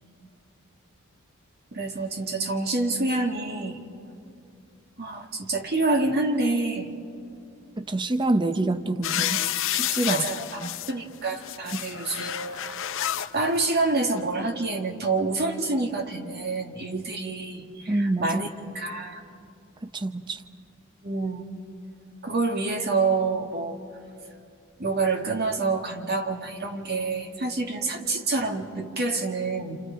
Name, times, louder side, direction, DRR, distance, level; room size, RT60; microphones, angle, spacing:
voice 1, 1.7-3.8 5.0-6.9 10.1-12.7 13.3-18.5 18.7-19.2 21.0-21.4 22.2-23.8 24.8-29.8, right 3 dB, 50° right, 3 dB, 2.0 m, -27 dB
voice 2, 7.8-9.4 9.7-10.3 10.6-10.7 11.7-11.8 17.9-18.4 19.8-20.4, right 2 dB, 20° right, 10 dB, 0.7 m, -26 dB
sound 1, 9.0-10.9 11.3-13.3 14.2-14.3, left 11 dB, 65° left, 0.7 m, -29 dB
29.5 x 28.5 x 5.1 m, 2.5 s
head